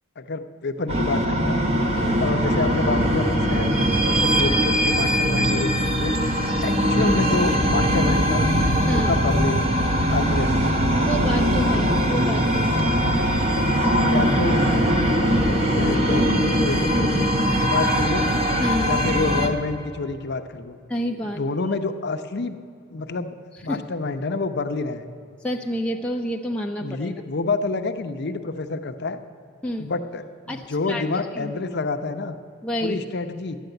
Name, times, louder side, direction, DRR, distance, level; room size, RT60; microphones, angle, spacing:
voice 1, 0.2-1.6 2.2-3.7 4.1-8.5 8.9-9.6 10.1-10.5 13.6-14.6 15.4-17.3 17.6-18.3 18.8-20.8 21.2-22.6 22.9-23.4 23.6-25.1 26.8-29.2 29.8-32.4 32.8-33.6, left 3 dB, 55° left, 9 dB, 0.7 m, -28 dB
sound 1, 0.9-19.5, equal, 30° right, 1.1 m, -21 dB
voice 2, 1.9-2.2 8.9-9.1 10.9-12.8 17.8-18.0 18.6-19.0 20.9-21.4 23.7-23.8 25.4-27.1 29.6-29.9 30.5-31.0 31.3-31.5 32.6-33.0, equal, 5° left, 0 dB, 0.5 m, -28 dB
12.0 x 9.5 x 7.9 m, 2.5 s
head